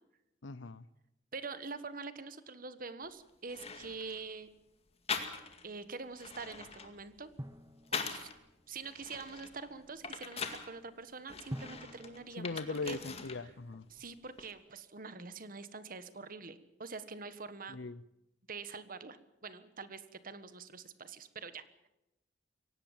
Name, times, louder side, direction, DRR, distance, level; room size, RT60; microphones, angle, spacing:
voice 1, 0.4-0.8 12.4-13.9 17.7-18.0, left 3 dB, 80° left, 0.8 m, -40 dB
voice 2, 1.3-4.5 5.6-7.3 7.9-8.3 8.7-12.6 12.9-13.0 13.9-17.8 18.5-21.9, right 4 dB, 50° right, 1.4 m, -45 dB
sound 1, 3.0-3.1 3.5-4.2 5.1-5.7 6.1-8.4 8.8-10.7 11.3-13.4 13.7-14.5, left 5 dB, 35° left, 2.1 m, -42 dB
Drum, 7.4-8.9 11.5-13.7, equal, 20° right, 1.0 m, -48 dB
23.5 x 18.0 x 7.4 m
head